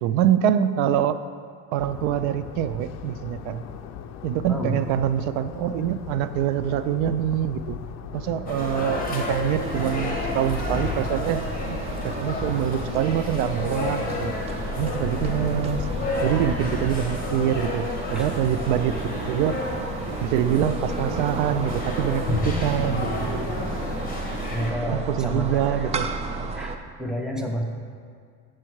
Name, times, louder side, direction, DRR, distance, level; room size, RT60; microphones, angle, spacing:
voice 1, 0.0-1.2 1.7-3.6 4.2-7.8 8.1-11.8 12.0-14.3 14.8-15.9 16.2-17.9 18.1-19.6 20.2-23.3 24.9-26.0, right 10 dB, 75° right, 12 dB, 0.5 m, -25 dB
sound 1, 1.8-16.9, left 8 dB, 40° left, 0.5 m, -39 dB
voice 2, 4.5-4.9 8.9-9.1 18.1-18.4 24.5-26.1 26.5-27.6, equal, ahead, 1 dB, 0.7 m, -31 dB
sound 2, 8.5-24.7, left 2 dB, 20° left, 1.5 m, -31 dB
sound 3, 9.6-26.8, right 3 dB, 20° right, 0.3 m, -33 dB
7.6 x 7.1 x 4.6 m, 2.1 s
cardioid pair, 135°, 39 cm